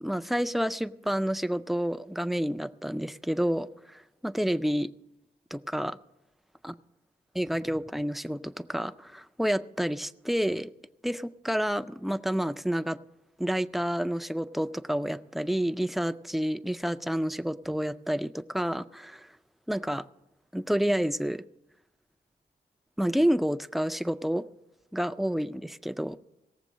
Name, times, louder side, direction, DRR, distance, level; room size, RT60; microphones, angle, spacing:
voice 1, 0.0-4.9 5.5-6.0 6.6-6.7 7.4-10.7 11.0-13.0 13.4-19.3 19.7-20.0 20.5-21.4 23.0-24.4 24.9-26.2, equal, ahead, 10 dB, 0.3 m, -29 dB
17.5 x 7.5 x 6.2 m, 0.89 s
wide cardioid pair, 110°, 17 cm